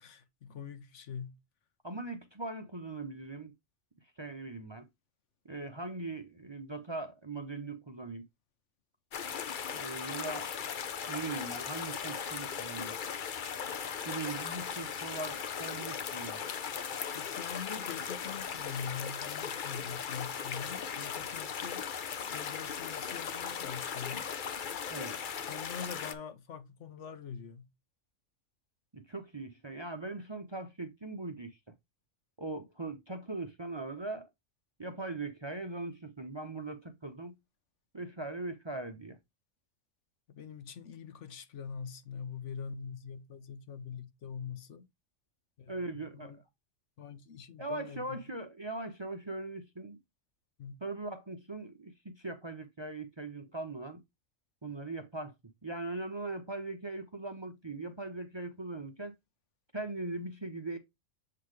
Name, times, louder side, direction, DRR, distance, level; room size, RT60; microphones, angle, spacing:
voice 1, 0.0-1.4 17.1-21.9 22.3-24.3 25.5-27.7 40.3-44.9 45.6-46.4 47.0-48.2 50.6-50.8, left 6 dB, 75° left, 1.2 m, -44 dB
voice 2, 1.8-3.5 4.2-4.9 5.4-8.2 9.7-10.5 11.1-12.9 14.0-16.5 24.9-25.2 28.9-31.6 32.4-34.3 34.8-37.3 37.9-39.2 45.7-46.4 47.6-50.0 50.8-54.0 54.6-55.3 55.6-59.1 59.7-60.8, right 2 dB, 30° right, 0.6 m, -40 dB
sound 1, 9.1-26.1, left 7 dB, 50° left, 0.7 m, -38 dB
7.5 x 4.0 x 3.2 m
omnidirectional pair, 1.3 m